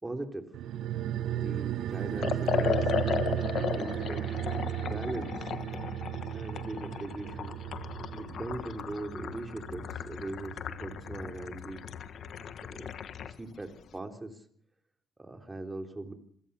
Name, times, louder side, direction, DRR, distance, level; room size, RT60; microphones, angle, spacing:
voice 1, 0.0-0.5 1.3-4.3 4.8-5.5 6.3-7.6 8.1-11.9 12.6-12.9 13.2-14.4 15.2-16.1, right 2 dB, 20° right, 5 dB, 3.5 m, -40 dB
sound 1, 0.5-11.4 11.7-11.8, right 12 dB, 80° right, 0.8 m, -35 dB
Liquid, 2.2-13.4, left 8 dB, 65° left, 1.4 m, -36 dB
27.0 x 16.5 x 7.0 m, 0.66 s
cardioid pair, 90°, 0 cm